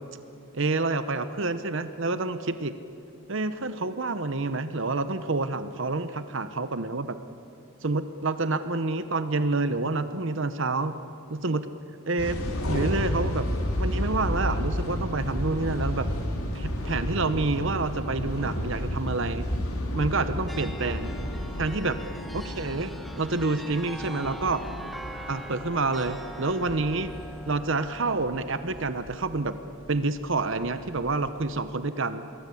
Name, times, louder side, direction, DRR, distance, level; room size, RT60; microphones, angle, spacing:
voice 1, 0.5-2.7 3.3-7.2 7.8-11.0 11.3-11.7 12.1-12.4 12.6-13.5 13.8-16.1 16.5-19.5 19.9-21.1 21.6-22.0 22.3-24.6 25.3-27.1 27.5-29.6 29.9-32.3, right 3 dB, 55° right, 11 dB, 0.9 m, -28 dB
sound 1, 12.2-31.3, left 1 dB, 80° left, 3.7 m, -32 dB
sound 2, 20.5-29.1, equal, ahead, 1.2 m, -43 dB
27.5 x 21.5 x 8.5 m, 2.6 s
head